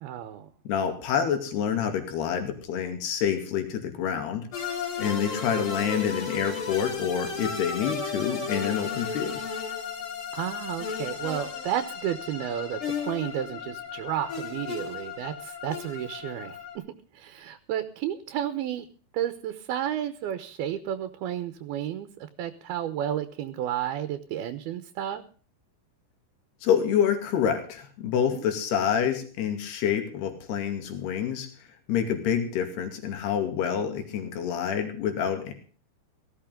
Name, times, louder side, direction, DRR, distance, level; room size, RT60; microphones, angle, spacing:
voice 1, 0.0-0.5 10.3-16.9 17.1-18.9 19.1-25.2 28.3-28.4, right 10 dB, 75° right, 10 dB, 2.9 m, -32 dB
voice 2, 0.7-4.5 5.0-9.4 26.6-31.5 31.9-35.5, left 8 dB, 80° left, 5 dB, 4.4 m, -27 dB
sound 1, 4.5-16.7, left 5 dB, 35° left, 3.0 m, -34 dB
18.0 x 15.0 x 3.8 m, 0.41 s
omnidirectional pair, 4.7 m